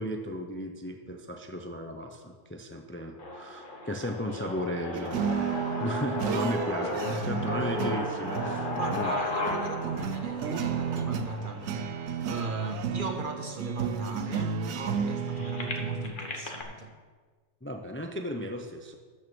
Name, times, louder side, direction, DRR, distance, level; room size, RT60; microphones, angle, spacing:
voice 1, 0.0-9.2 17.6-19.0, equal, 15° left, 4 dB, 0.6 m, -35 dB
sound 1, 3.2-13.1 13.8-13.9 14.2-16.6, left 2 dB, 40° left, 1.5 m, -36 dB
sound 2, 4.9-16.1, right 6 dB, 85° right, 1.1 m, -32 dB
voice 2, 8.7-16.9, right 3 dB, 45° right, 5 dB, 0.9 m, -37 dB
13.5 x 6.1 x 6.2 m, 1.5 s
omnidirectional pair, 1.4 m